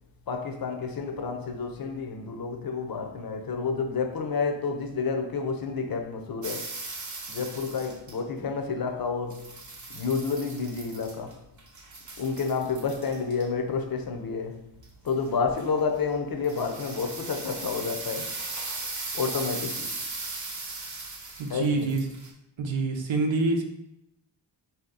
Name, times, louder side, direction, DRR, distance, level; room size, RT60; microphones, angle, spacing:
voice 1, 0.3-6.8 7.3-9.6 9.9-11.4 12.2-14.6 15.0-18.4 19.1-20.0 21.5-22.0, left 5 dB, 50° left, 0.6 m, -30 dB
sound 1, 6.4-8.4 9.3-11.3 11.6-13.4 14.8-15.3 15.6-15.8 16.4-22.3, right 3 dB, 40° right, 0.7 m, -38 dB
voice 2, 21.4-22.0 22.6-23.6, right 3 dB, 85° right, 0.7 m, -26 dB
4.0 x 2.8 x 3.9 m
wide cardioid pair, 135°, 45 cm